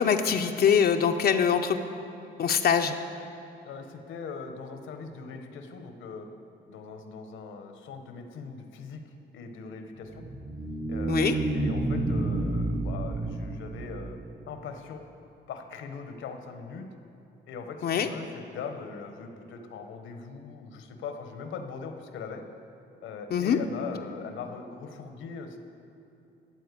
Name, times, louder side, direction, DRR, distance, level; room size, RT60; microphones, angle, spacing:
voice 1, 0.0-1.8 2.4-2.9 11.1-11.3 17.8-18.1 23.3-23.6, left 7 dB, 55° left, 6 dB, 0.5 m, -23 dB
voice 2, 3.6-6.3 6.7-10.2 10.9-14.2 14.5-15.0 15.5-16.9 17.5-22.4 23.0-25.6, left 5 dB, 80° left, 6 dB, 1.0 m, -40 dB
sound 1, 10.0-14.5, right 2 dB, 25° right, 0.7 m, -30 dB
13.0 x 4.4 x 8.2 m, 2.8 s
cardioid pair, 90°, 20 cm